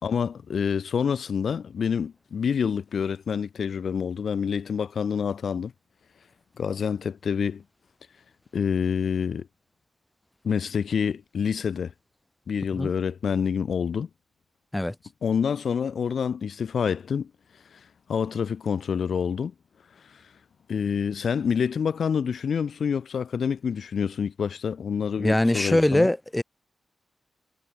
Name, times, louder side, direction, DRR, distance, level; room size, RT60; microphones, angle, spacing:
voice 1, 0.0-5.7 6.6-7.6 8.5-9.5 10.4-11.9 12.5-14.1 15.2-17.3 17.7-19.5 20.0-20.2 20.7-26.1, left 7 dB, 75° left, 4.3 m, -27 dB
voice 2, 25.2-26.4, left 1 dB, 15° left, 5.8 m, -22 dB
cardioid pair, 60°, 0 cm